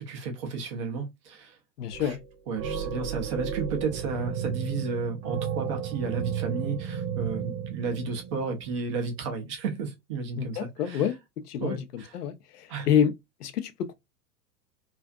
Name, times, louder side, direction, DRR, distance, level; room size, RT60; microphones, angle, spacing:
voice 1, 0.0-1.6 2.0-2.2 2.5-11.1 11.6-12.2 12.7-12.9, right 4 dB, 20° right, 0.4 m, -33 dB
voice 2, 1.8-2.2 10.4-11.1 11.5-13.1 13.4-13.9, left 8 dB, 70° left, 0.6 m, -28 dB
sound 1, 1.9-2.3 2.6-9.3, right 8 dB, 45° right, 0.9 m, -34 dB
2.4 x 2.4 x 2.2 m
figure-of-eight pair, 95°, 49 cm